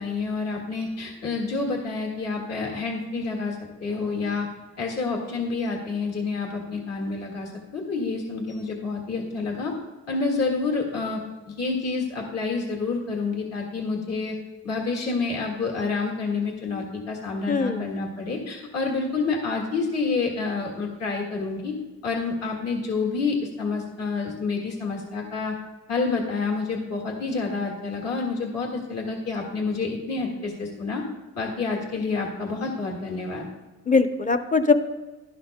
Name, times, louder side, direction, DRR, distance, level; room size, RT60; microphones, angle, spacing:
voice 1, 0.0-3.6 3.8-4.5 4.8-9.8 10.1-11.2 11.6-14.4 14.6-21.8 22.0-25.5 25.9-31.0 31.3-33.5, left 4 dB, 55° left, 1 dB, 1.8 m, -28 dB
voice 2, 17.5-17.9 33.9-34.7, left 4 dB, 25° left, 8 dB, 0.7 m, -21 dB
11.5 x 11.0 x 2.2 m, 1.2 s
cardioid pair, 90°, 30 cm